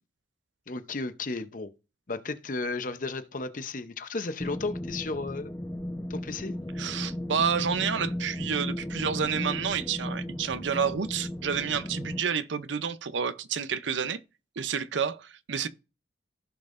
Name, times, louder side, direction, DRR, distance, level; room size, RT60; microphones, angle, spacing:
voice 1, 0.7-1.7 2.1-5.5 6.1-6.6, left 3 dB, 45° left, 0.7 m, -34 dB
sound 1, 4.4-12.2, left 1 dB, 10° left, 1.0 m, -35 dB
voice 2, 6.8-14.2 14.6-15.7, right 6 dB, 85° right, 0.7 m, -29 dB
15.5 x 5.4 x 2.6 m
head